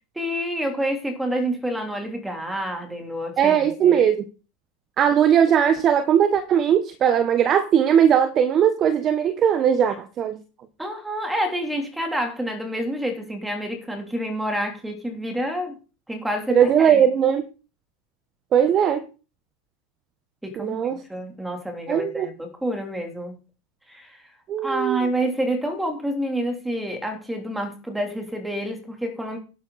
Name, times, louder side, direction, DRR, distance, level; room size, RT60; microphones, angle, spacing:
voice 1, 0.1-4.0 10.8-15.8 16.1-17.0 20.4-23.3 23.9-24.2 24.6-29.4, right 1 dB, 5° right, 3.4 m, -28 dB
voice 2, 3.4-4.2 5.0-10.4 16.5-17.4 18.5-19.1 20.6-21.0 21.9-22.3 24.5-25.1, right 8 dB, 35° right, 1.2 m, -19 dB
11.5 x 9.3 x 4.2 m
hypercardioid pair, 105°, 0 cm